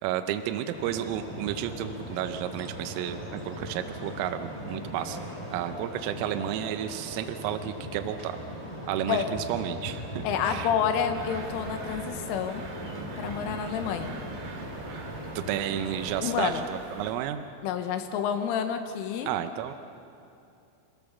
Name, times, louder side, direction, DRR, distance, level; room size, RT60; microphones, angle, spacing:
voice 1, 0.0-5.2 5.5-8.4 8.9-10.7 15.4-17.4 19.3-19.7, right 11 dB, 85° right, 8 dB, 3.4 m, -32 dB
sound 1, 0.7-16.2, equal, 10° left, 2.2 m, -39 dB
voice 2, 10.2-12.7 13.2-14.2 16.2-16.7 17.6-19.3, left 8 dB, 80° left, 7 dB, 3.6 m, -29 dB
sound 2, 11.1-17.1, right 4 dB, 70° right, 4.4 m, -43 dB
27.0 x 16.5 x 7.2 m, 2.7 s
omnidirectional pair, 5.8 m